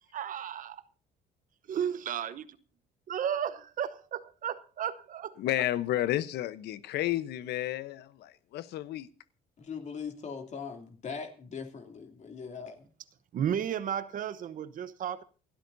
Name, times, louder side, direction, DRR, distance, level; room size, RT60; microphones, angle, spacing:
voice 1, 0.1-0.8 1.7-2.5 3.1-5.7 6.0-6.1 13.3-15.2, right 9 dB, 55° right, 1.0 m, -34 dB
voice 2, 5.4-9.1, left 14 dB, 75° left, 1.0 m, -31 dB
voice 3, 9.6-12.9, left 6 dB, 45° left, 3.0 m, -40 dB
28.0 x 12.5 x 2.7 m
cardioid pair, 110°, 17 cm